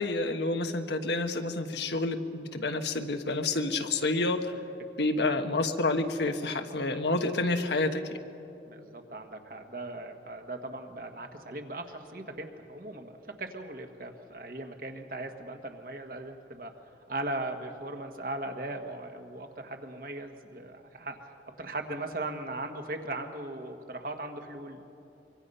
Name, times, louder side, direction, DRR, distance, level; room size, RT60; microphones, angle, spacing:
voice 1, 0.0-4.5 5.0-8.2, left 2 dB, 75° left, 6 dB, 1.3 m, -29 dB
voice 2, 8.7-13.1 13.4-16.7 17.1-21.2 21.6-24.8, right 2 dB, 50° right, 5 dB, 1.6 m, -38 dB
24.5 x 24.0 x 5.6 m, 2.9 s
head